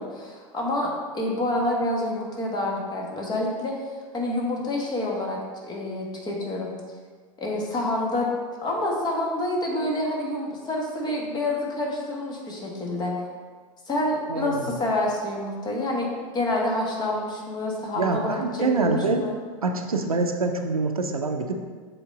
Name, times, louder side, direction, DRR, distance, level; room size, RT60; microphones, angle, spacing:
voice 1, 0.0-3.7 4.1-6.7 7.4-8.3 8.6-13.1 13.9-19.4, left 1 dB, 25° left, -1 dB, 1.4 m, -28 dB
voice 2, 14.3-14.8 18.0-19.3 19.6-21.5, right 3 dB, 85° right, 5 dB, 0.6 m, -25 dB
6.9 x 3.8 x 3.7 m, 1.5 s
figure-of-eight pair, 85°, 18 cm